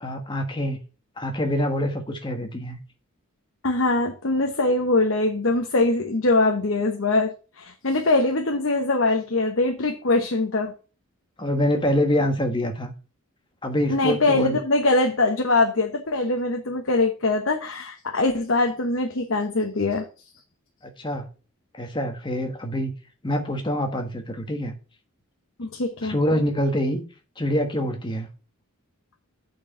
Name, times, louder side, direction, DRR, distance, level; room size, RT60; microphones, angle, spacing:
voice 1, 0.0-0.8 1.2-2.8 11.4-12.9 13.6-14.6 20.8-21.3 21.7-22.9 23.2-24.7 26.0-27.0 27.4-28.3, left 1 dB, 20° left, 1.4 m, -25 dB
voice 2, 3.6-10.7 13.9-20.1 25.6-26.2, left 2 dB, 60° left, 1.0 m, -22 dB
8.3 x 4.7 x 6.0 m
head